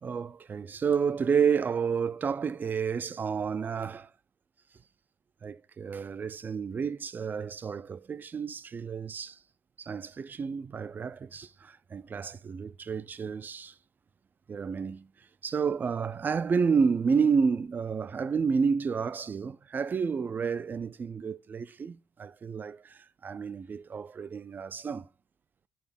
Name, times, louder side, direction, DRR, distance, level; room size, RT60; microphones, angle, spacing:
voice 1, 0.0-4.1 5.4-9.4 9.8-13.7 14.5-15.1 15.4-25.1, right 6 dB, 25° right, 0.3 m, -30 dB
12.5 x 5.0 x 3.4 m
cardioid pair, 165°, 7 cm